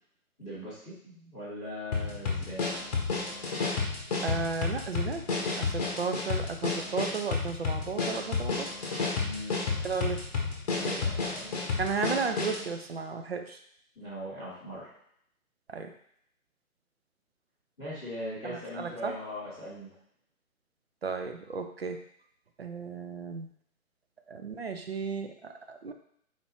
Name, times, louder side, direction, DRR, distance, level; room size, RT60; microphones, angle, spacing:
voice 1, 0.4-2.6 9.2-9.6 10.7-11.6 13.9-14.9 17.8-19.9, equal, 5° left, -16 dB, 0.5 m, -40 dB
sound 1, 1.9-12.7, left 4 dB, 30° left, 0.8 m, -31 dB
voice 2, 4.2-5.2 5.6-8.7 9.8-10.2 11.8-13.6 15.7-15.9 18.4-19.1 21.0-22.0 22.6-23.5 24.3-25.9, right 5 dB, 45° right, 6 dB, 0.5 m, -34 dB
4.3 x 2.5 x 4.5 m, 0.68 s
figure-of-eight pair, 130°, 43 cm